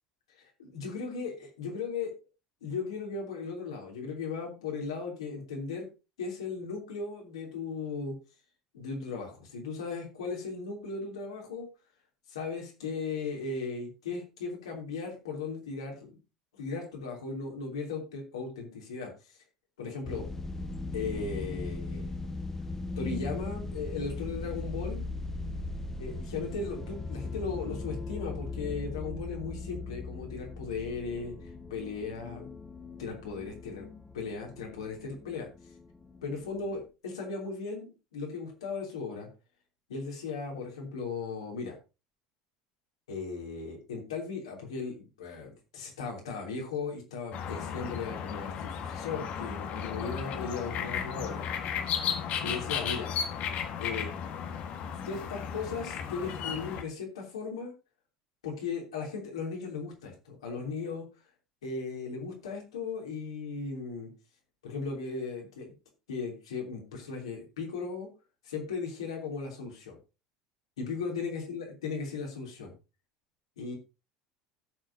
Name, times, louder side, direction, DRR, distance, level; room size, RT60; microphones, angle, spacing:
voice 1, 0.6-2.1 2.6-5.9 6.2-8.1 8.7-11.7 12.3-16.2 16.5-19.1 19.8-20.2 20.9-22.1 23.0-25.0 26.0-31.4 31.7-32.5 33.0-33.8 34.1-35.5 36.2-39.3 39.9-41.8 43.1-51.5 52.4-53.1 53.8-54.1 55.0-57.7 58.4-61.1 61.6-64.1 64.6-65.7 66.1-68.1 68.4-70.0 70.8-72.7 73.6-73.7, left 4 dB, 70° left, -1 dB, 3.2 m, -37 dB
sound 1, 20.1-36.8, left 3 dB, 15° left, 1.1 m, -39 dB
sound 2, 47.3-56.8, left 7 dB, 50° left, 1.5 m, -34 dB
17.0 x 6.4 x 2.8 m, 0.29 s
figure-of-eight pair, 70°, 3 cm